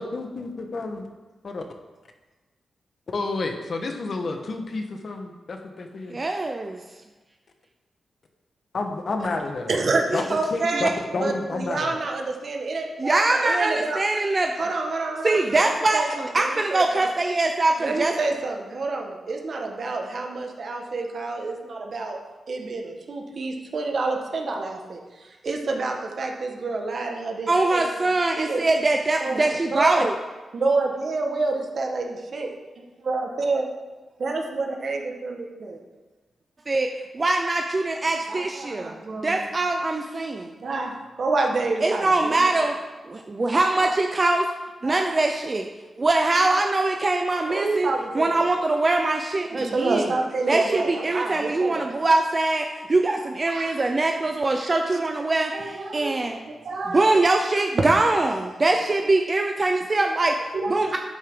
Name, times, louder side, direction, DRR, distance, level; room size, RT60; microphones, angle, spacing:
voice 1, 0.0-1.1 1.4-1.6 3.1-6.2 8.7-9.7 10.1-10.2 10.5-12.0, left 3 dB, 45° left, 4 dB, 1.2 m, -30 dB
voice 2, 6.1-6.8 10.1-10.2 13.0-14.5 15.2-18.1 27.5-30.1 36.7-40.5 41.8-42.8 43.0-44.5 44.8-45.7 46.0-47.9 48.1-50.1 50.5-56.4 56.9-60.4 60.7-61.0, right 2 dB, 30° right, 3 dB, 0.6 m, -23 dB
voice 3, 9.7-10.0 10.3-14.0 14.6-17.1 17.8-22.2 22.5-28.1 28.4-28.6 29.2-30.1 30.5-32.5 33.0-33.7 34.2-35.8 38.3-39.4 40.6-42.7 43.8-43.9 44.8-45.0 46.0-46.1 47.5-48.4 49.5-52.0 53.5-53.7 55.5-57.1 60.5-60.9, right 3 dB, 50° right, 2 dB, 1.5 m, -28 dB
11.0 x 9.2 x 3.8 m, 1.2 s
wide cardioid pair, 135°, 0 cm